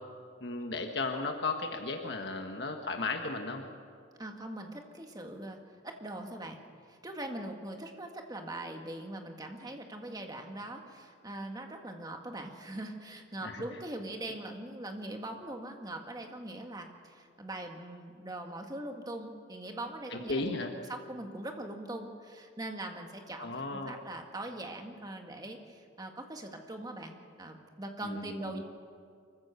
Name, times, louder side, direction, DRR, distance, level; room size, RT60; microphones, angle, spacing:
voice 1, 0.4-3.6 13.4-13.6 20.1-20.7 23.4-24.0 28.0-28.6, left 3 dB, 70° left, 3 dB, 1.4 m, -35 dB
voice 2, 4.2-6.6 6.9-28.6, right 1 dB, 20° right, 3 dB, 1.8 m, -41 dB
25.0 x 15.0 x 6.9 m, 2.2 s
head